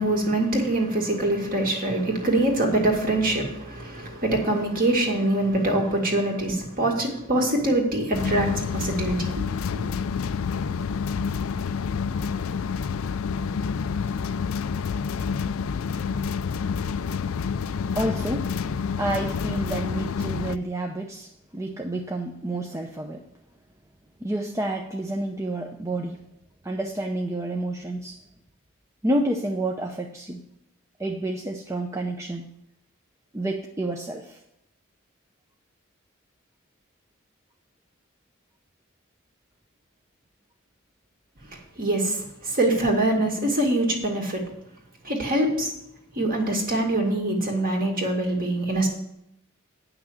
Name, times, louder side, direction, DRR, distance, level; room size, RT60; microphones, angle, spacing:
voice 1, 0.0-9.4 9.7-9.8 41.8-42.2 42.4-44.4 45.0-45.7 46.2-48.9, right 1 dB, 45° right, 1 dB, 2.1 m, -24 dB
sound 1, 8.1-20.6, left 6 dB, 75° left, 0.4 m, -28 dB
voice 2, 18.0-18.5 19.0-23.2 24.2-26.2 26.6-28.2 29.0-30.4 31.0-32.5 33.3-34.4, right 1 dB, 15° right, 1 dB, 0.6 m, -29 dB
9.5 x 6.0 x 7.9 m, 0.79 s
head